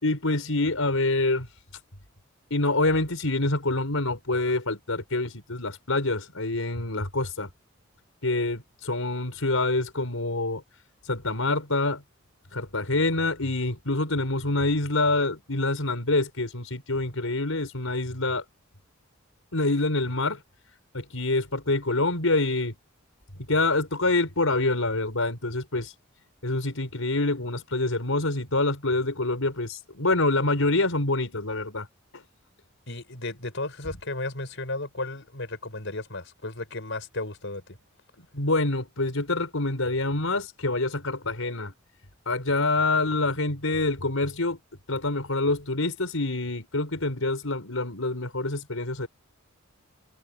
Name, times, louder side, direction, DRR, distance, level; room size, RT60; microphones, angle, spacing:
voice 1, 0.0-1.5 2.5-7.5 8.2-10.6 11.0-12.0 12.5-18.4 19.5-20.4 20.9-22.8 23.5-25.9 26.4-31.9 32.1-32.2 38.3-41.7 42.3-44.6 44.9-49.1, left 2 dB, 90° left, 4.7 m, -26 dB
voice 2, 32.9-37.8, left 2 dB, 60° left, 6.5 m, -34 dB
head